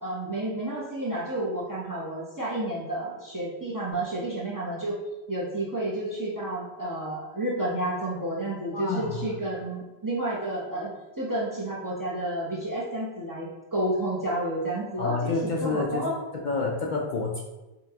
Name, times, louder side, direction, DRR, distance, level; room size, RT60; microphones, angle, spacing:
voice 1, 0.0-5.0 5.3-16.1, right 1 dB, 25° right, -6 dB, 0.6 m, -31 dB
voice 2, 8.7-9.3 15.0-16.1 16.4-17.4, left 3 dB, 55° left, -2 dB, 0.6 m, -28 dB
5.3 x 2.2 x 2.8 m, 1.1 s
omnidirectional pair, 1.0 m